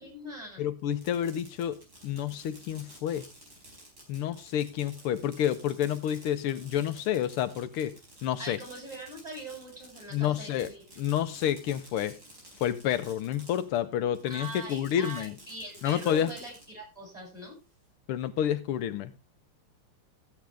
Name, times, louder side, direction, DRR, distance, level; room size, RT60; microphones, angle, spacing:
voice 1, 0.0-0.6 8.4-10.8 14.3-17.6, right 1 dB, 15° right, 7.9 m, -42 dB
voice 2, 0.6-3.2 4.1-8.0 8.2-8.6 10.1-10.7 11.0-12.1 12.6-15.3 15.8-16.3 18.1-19.1, left 10 dB, 85° left, 1.7 m, -29 dB
Fireworks, 0.8-13.8 14.1-16.7, right 1 dB, 45° right, 4.8 m, -52 dB
14.5 x 9.1 x 3.4 m
omnidirectional pair, 2.4 m